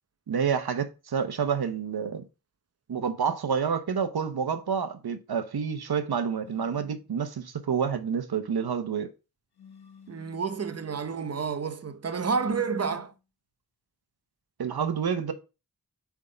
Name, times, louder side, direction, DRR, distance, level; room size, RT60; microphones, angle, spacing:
voice 1, 0.3-2.2 2.9-9.1 14.6-15.3, right 6 dB, 80° right, 0.9 m, -28 dB
sound 1, 6.4-7.0 9.6-10.5 12.1-13.2, left 6 dB, 90° left, 1.0 m, -50 dB
voice 2, 10.1-13.1, right 5 dB, 40° right, 0.7 m, -30 dB
8.1 x 3.6 x 3.9 m
wide cardioid pair, 85°, 38 cm